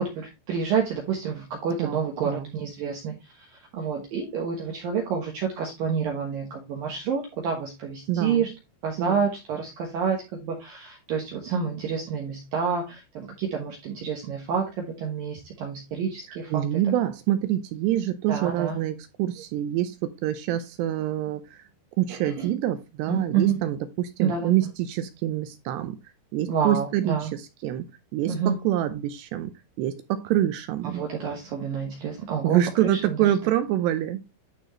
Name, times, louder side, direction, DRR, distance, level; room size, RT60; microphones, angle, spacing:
voice 1, 0.0-8.5 8.8-16.6 18.3-18.8 22.1-22.5 23.1-23.6 24.2-24.5 26.5-27.3 28.3-28.6 30.8-33.4, right 6 dB, 65° right, 2.4 m, -28 dB
voice 2, 8.1-8.5 9.0-9.2 16.5-21.6 22.0-26.0 26.3-27.9 28.1-29.5 29.8-31.0 32.4-34.2, right 12 dB, 80° right, 2.6 m, -26 dB
11.5 x 4.5 x 3.1 m
omnidirectional pair, 5.4 m